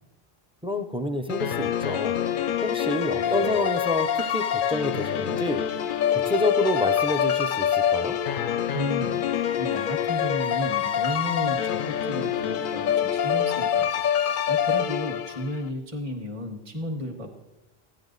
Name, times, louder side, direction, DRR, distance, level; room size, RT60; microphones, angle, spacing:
voice 1, 0.6-2.2 2.6-5.6 6.1-8.2, left 2 dB, 10° right, 8 dB, 0.4 m, -28 dB
sound 1, 1.3-15.6, left 9 dB, 60° left, 0.6 m, -26 dB
voice 2, 3.1-3.6 8.7-17.4, left 1 dB, 30° right, 2 dB, 1.3 m, -34 dB
14.0 x 9.9 x 4.0 m, 1.0 s
omnidirectional pair, 1.1 m